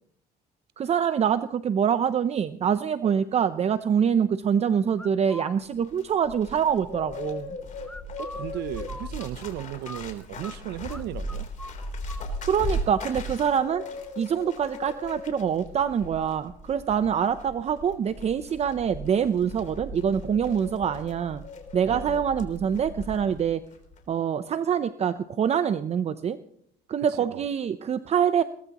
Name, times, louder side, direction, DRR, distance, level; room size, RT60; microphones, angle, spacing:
voice 1, 0.8-7.6 12.4-13.9 14.2-21.4 21.7-23.6 24.1-26.4 26.9-28.4, right 8 dB, 40° right, 0.6 m, -25 dB
sound 1, 5.0-5.5 7.8-10.6 10.9-11.0 11.3-12.3, left 1 dB, 5° left, 0.8 m, -42 dB
Bird, 5.6-23.5 23.7-24.0, left 1 dB, 45° left, 3.5 m, -37 dB
voice 2, 8.2-11.5 21.9-22.2 27.3-27.4, right 13 dB, 80° right, 0.7 m, -35 dB
22.0 x 18.5 x 3.0 m
cardioid pair, 110°, 17 cm